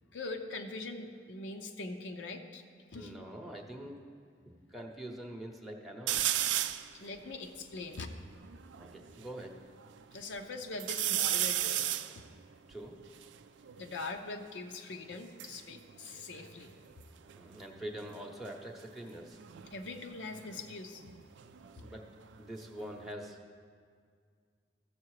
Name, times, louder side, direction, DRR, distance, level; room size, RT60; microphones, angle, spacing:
voice 1, 0.1-2.6 2.9-3.2 6.9-8.1 10.1-11.9 12.2-12.3 13.8-16.7 19.7-21.0, left 3 dB, 80° left, 4 dB, 0.6 m, -42 dB
voice 2, 2.9-4.0 4.4-6.4 8.8-9.5 12.7-13.0 17.4-19.4 21.8-22.1 22.4-23.4, right 1 dB, ahead, 1 dB, 0.7 m, -44 dB
sound 1, 6.1-6.9 7.5-7.6 7.7-9.3 9.8-10.4 10.8-14.2 15.1-17.0 17.3-17.8 19.3-22.0 22.3-23.1, right 12 dB, 90° right, 0.4 m, -35 dB
14.0 x 6.8 x 4.8 m, 2.1 s
head